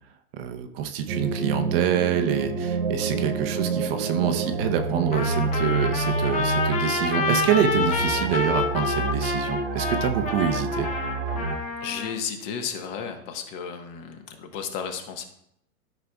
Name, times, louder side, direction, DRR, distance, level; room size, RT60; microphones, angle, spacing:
voice 1, 0.4-10.9, right 9 dB, 45° right, 8 dB, 0.8 m, -26 dB
sound 1, 1.1-11.6, right 3 dB, 60° right, 1.4 m, -28 dB
Trumpet, 5.1-12.1, left 4 dB, 20° left, 0.7 m, -28 dB
voice 2, 11.8-15.3, left 7 dB, 35° left, 5 dB, 1.2 m, -33 dB
13.0 x 5.6 x 2.3 m, 0.74 s
hypercardioid pair, 135°, 42 cm